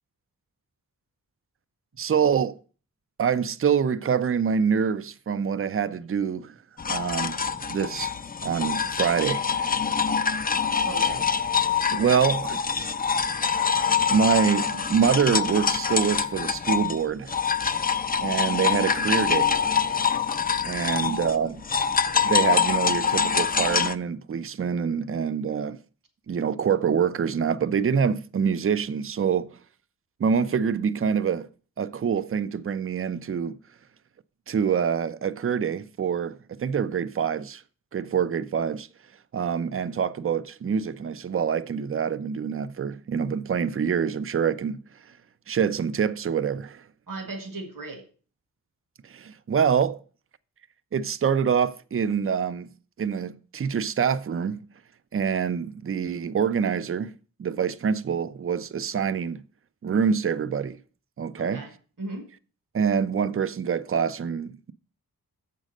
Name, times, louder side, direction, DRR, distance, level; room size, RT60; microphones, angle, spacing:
voice 1, 2.0-2.6 3.2-6.5 6.9-7.4 7.6-8.1 8.4-9.7 11.9-12.6 14.1-17.4 18.2-19.5 20.6-21.7 22.2-25.8 26.3-29.6 30.2-31.5 31.8-33.6 34.5-37.6 37.9-38.9 39.3-45.2 45.5-46.8 49.0-50.0 50.9-52.7 53.0-54.6 55.1-57.1 57.4-59.4 59.8-60.8 61.2-61.6 62.7-64.7, right 7 dB, 40° right, 0.5 m, -25 dB
sound 1, 6.8-17.0 17.3-23.9, left 6 dB, 25° left, 0.4 m, -25 dB
voice 2, 10.8-11.3 19.9-20.0 20.8-21.2 47.1-48.0 61.4-61.7 62.0-62.3, right 2 dB, 65° right, 1.9 m, -37 dB
7.2 x 5.3 x 6.4 m
wide cardioid pair, 80°, 35 cm